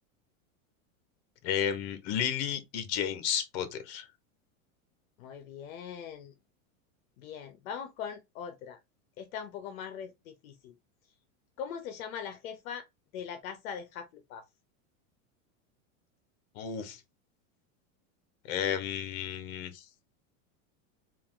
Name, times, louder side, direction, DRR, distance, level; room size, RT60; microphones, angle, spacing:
voice 1, 1.4-4.1 16.5-17.0 18.5-19.8, left 9 dB, 55° left, 1.1 m, -32 dB
voice 2, 5.2-6.3 7.2-8.8 9.2-10.7 11.6-12.8 13.1-14.4, left 7 dB, 80° left, 0.8 m, -41 dB
3.6 x 2.6 x 3.7 m
supercardioid pair, 155°, 40 cm